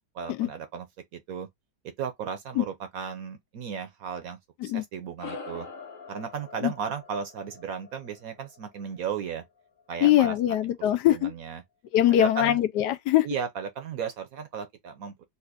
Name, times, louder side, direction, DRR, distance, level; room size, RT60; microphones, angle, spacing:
voice 1, 0.1-0.9 1.1-1.5 2.0-5.7 6.1-9.4 9.9-10.3 11.1-11.6 12.2-12.6 13.2-15.2, right 7 dB, 65° right, 1.0 m, -35 dB
sound 1, 5.2-9.9, left 4 dB, 50° left, 1.3 m, -44 dB
voice 2, 10.0-11.3 11.9-13.3, left 12 dB, 75° left, 1.1 m, -22 dB
4.1 x 2.5 x 2.5 m
omnidirectional pair, 1.9 m